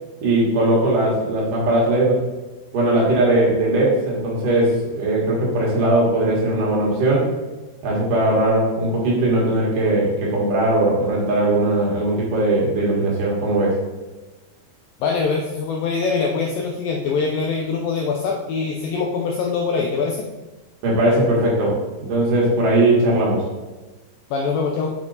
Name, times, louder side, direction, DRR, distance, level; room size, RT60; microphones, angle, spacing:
voice 1, 0.2-2.3 2.7-7.3 7.8-13.7 20.8-23.5, right 1 dB, 60° right, -4 dB, 2.8 m, -19 dB
voice 2, 15.0-20.3 24.3-24.9, left 4 dB, 80° left, 1 dB, 2.0 m, -23 dB
7.3 x 5.3 x 4.0 m, 1.2 s
omnidirectional pair, 4.7 m